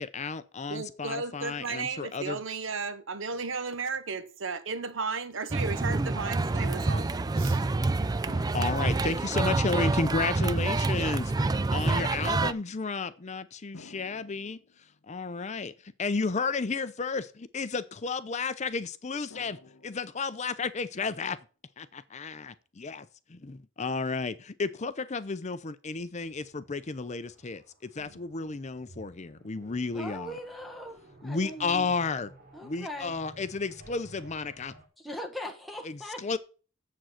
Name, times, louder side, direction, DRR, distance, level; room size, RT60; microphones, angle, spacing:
voice 1, 0.0-2.4 8.5-14.6 15.1-21.4 21.8-30.4 31.2-32.3 32.6-34.7 35.8-36.4, left 4 dB, 35° left, 0.6 m, -32 dB
voice 2, 0.7-7.7, right 4 dB, 70° right, 1.0 m, -34 dB
sound 1, 5.5-12.5, right 3 dB, 20° right, 0.4 m, -27 dB
sound 2, 13.7-15.5 19.3-20.6, left 3 dB, 70° left, 1.0 m, -53 dB
sound 3, 26.2-34.9, right 2 dB, 45° right, 3.1 m, -54 dB
voice 3, 29.9-31.9 32.5-33.2 35.0-36.4, left 1 dB, ahead, 1.3 m, -40 dB
7.8 x 7.6 x 5.7 m
head